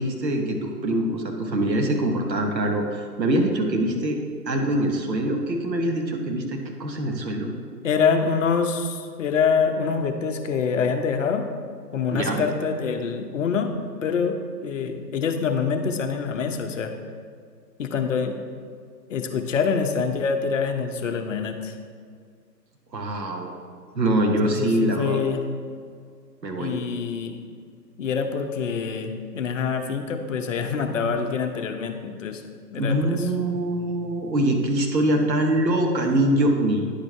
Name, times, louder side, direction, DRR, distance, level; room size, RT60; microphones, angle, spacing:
voice 1, 0.0-4.2 4.5-7.5 12.1-12.4 22.9-23.5 23.9-25.2 26.4-26.7 32.8-36.9, right 1 dB, 85° right, 3 dB, 1.1 m, -24 dB
voice 2, 7.8-11.4 11.9-14.3 14.6-16.9 17.8-18.3 19.1-21.7 24.4-25.4 26.6-27.4 28.0-32.4 32.7-33.3, left 6 dB, 50° left, 5 dB, 0.7 m, -25 dB
10.0 x 5.1 x 3.3 m, 2.1 s
figure-of-eight pair, 130°, 49 cm